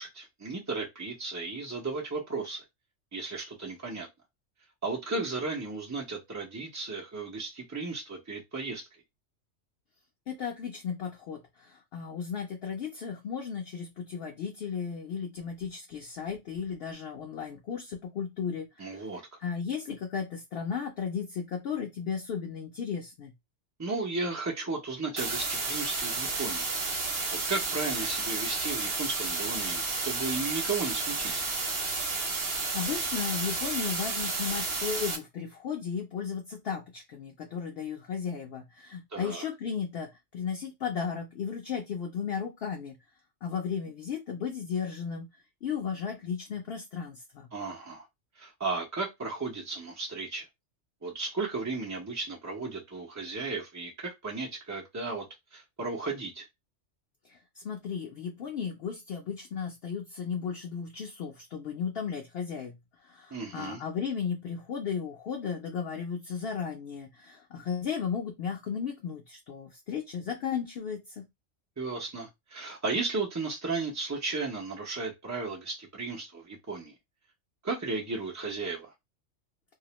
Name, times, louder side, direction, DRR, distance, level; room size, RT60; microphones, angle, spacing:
voice 1, 0.0-2.6 3.1-4.1 4.8-8.8 18.8-19.2 23.8-26.7 27.5-31.4 39.1-39.5 47.5-48.1 48.4-50.4 51.0-55.3 55.5-56.5 63.3-63.8 71.8-76.9 77.6-78.9, right 3 dB, 25° right, 0.3 m, -35 dB
voice 2, 10.3-19.0 19.4-23.3 32.3-43.0 43.4-45.3 45.6-47.5 57.3-62.7 63.0-71.2, left 7 dB, 60° left, 0.7 m, -35 dB
sound 1, 25.2-35.2, right 3 dB, 55° right, 0.9 m, -31 dB
2.3 x 2.1 x 2.9 m
omnidirectional pair, 1.3 m